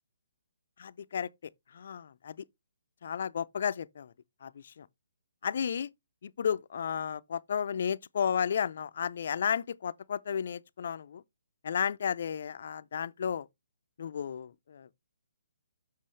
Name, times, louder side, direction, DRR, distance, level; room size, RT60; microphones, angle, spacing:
voice 1, 0.8-1.3 1.7-2.4 3.0-4.1 4.4-4.9 5.4-5.9 6.2-11.2 11.6-13.5 14.0-14.9, left 7 dB, 55° left, 0.4 m, -33 dB
7.5 x 6.1 x 3.2 m
hypercardioid pair, 140°, 0 cm